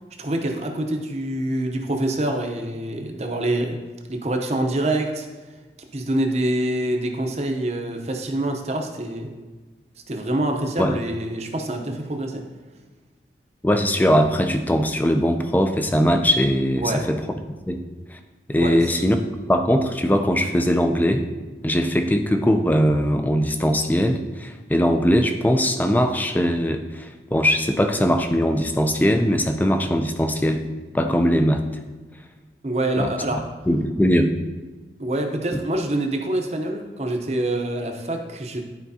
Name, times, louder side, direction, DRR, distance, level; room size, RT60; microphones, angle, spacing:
voice 1, 0.2-3.8 4.1-5.3 5.9-9.3 10.1-12.4 16.8-17.0 18.6-18.8 32.6-33.4 35.0-38.6, right 1 dB, 40° right, 3 dB, 0.7 m, -25 dB
voice 2, 13.6-17.2 17.7-17.8 18.1-18.2 18.5-19.2 19.4-21.2 21.6-30.6 30.9-31.6 33.0-33.1 33.7-34.3, equal, 10° left, 6 dB, 0.4 m, -20 dB
11.5 x 4.5 x 2.7 m, 1.3 s
head